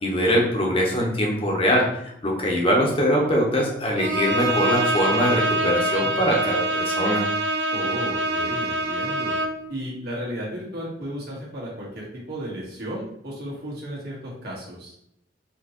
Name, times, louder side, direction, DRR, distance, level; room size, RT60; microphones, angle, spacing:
voice 1, 0.0-7.2, equal, 30° left, -2 dB, 0.9 m, -22 dB
Bowed string instrument, 4.0-9.7, right 1 dB, 90° right, 0.5 m, -25 dB
voice 2, 7.7-9.4 9.7-14.9, equal, 60° right, -5 dB, 1.5 m, -34 dB
4.3 x 2.9 x 2.9 m, 0.72 s
head